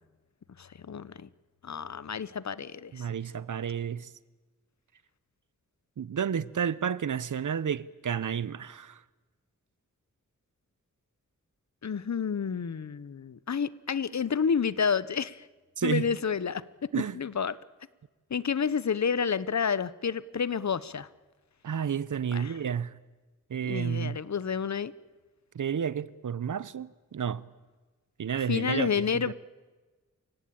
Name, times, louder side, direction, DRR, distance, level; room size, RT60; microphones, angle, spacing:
voice 1, 0.6-1.3 1.6-3.1 11.8-15.5 15.8-16.6 17.1-17.6 18.3-21.1 22.3-22.5 23.6-24.9 28.5-29.3, left 6 dB, 60° left, 0.8 m, -30 dB
voice 2, 2.9-4.1 6.0-9.0 15.8-16.0 16.9-17.2 21.6-23.0 23.5-24.2 25.5-27.5 28.2-28.9 29.3-29.4, right 8 dB, 70° right, 0.8 m, -31 dB
28.5 x 16.5 x 8.6 m
cardioid pair, 45°, 32 cm